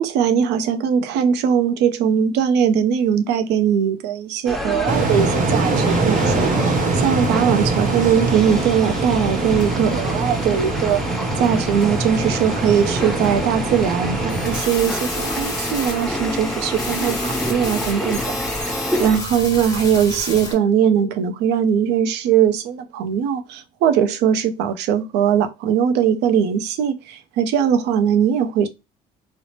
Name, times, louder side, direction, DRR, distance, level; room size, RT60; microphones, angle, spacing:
voice 1, 0.0-28.7, right 8 dB, 85° right, 0.5 m, -20 dB
sound 1, 4.5-19.2, equal, ahead, 0.5 m, -28 dB
sound 2, 4.9-14.6, right 3 dB, 50° right, 0.8 m, -23 dB
sound 3, 14.3-20.5, left 2 dB, 20° left, 1.2 m, -30 dB
3.2 x 2.0 x 2.6 m
cardioid pair, 110°, 17 cm